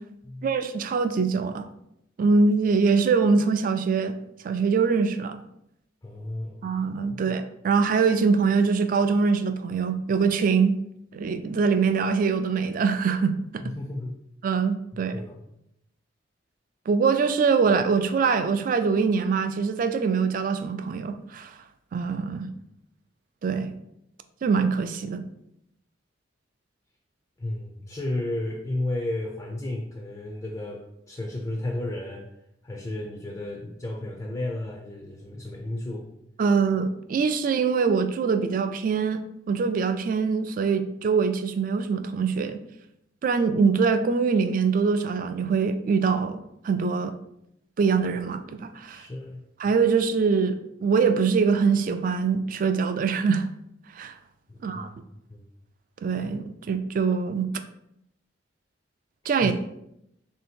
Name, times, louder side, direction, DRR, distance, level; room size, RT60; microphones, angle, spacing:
voice 1, 0.4-1.7 2.2-4.1 4.4-5.4 6.6-10.7 11.1-13.6 14.4-15.1 16.9-21.5 21.9-22.5 23.4-23.7 24.4-25.2 36.4-39.2 39.5-42.6 43.2-47.1 47.8-49.1 49.6-53.5 53.9-54.1 54.6-54.9 56.0-57.5 59.3-59.5, right 5 dB, 45° right, 9 dB, 0.3 m, -23 dB
voice 2, 6.0-6.6 7.1-7.2 13.6-14.1 14.9-15.4 22.3-22.4 27.4-32.3 32.6-36.1 48.9-49.4 54.5-55.0 55.3-55.4 59.4-59.5, left 1 dB, 20° left, 0 dB, 0.4 m, -33 dB
3.4 x 2.8 x 4.2 m, 0.79 s
head